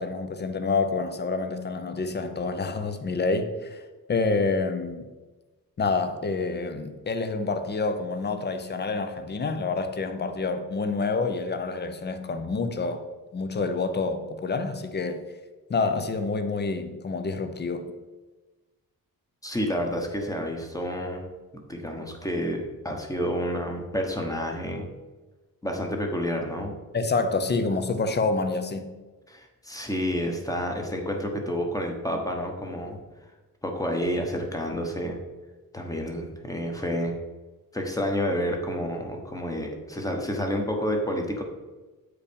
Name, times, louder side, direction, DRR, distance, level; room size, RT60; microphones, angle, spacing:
voice 1, 0.0-3.8 4.1-5.1 5.8-13.0 13.3-15.2 15.7-17.8 26.9-28.9, left 3 dB, 30° left, 8 dB, 0.7 m, -27 dB
voice 2, 19.4-21.2 21.7-24.9 25.6-26.7 29.3-33.0 33.6-35.2 35.7-37.1 37.7-41.4, equal, 10° left, 2 dB, 1.1 m, -29 dB
8.3 x 4.9 x 5.2 m, 1.2 s
wide cardioid pair, 165°, 34 cm